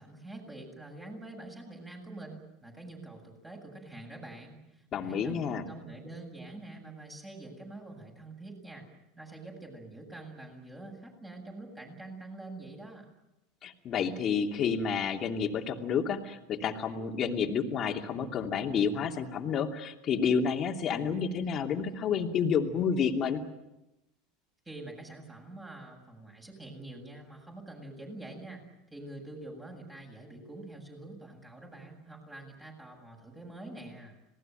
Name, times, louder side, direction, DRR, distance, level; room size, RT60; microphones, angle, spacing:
voice 1, 0.0-8.9 9.2-13.1 24.7-28.6 28.9-34.2, right 2 dB, 10° right, 0 dB, 7.8 m, -46 dB
voice 2, 4.9-5.7 13.6-23.4, left 6 dB, 40° left, 2 dB, 2.9 m, -30 dB
27.0 x 19.0 x 9.2 m, 0.93 s
supercardioid pair, 115°, 0 cm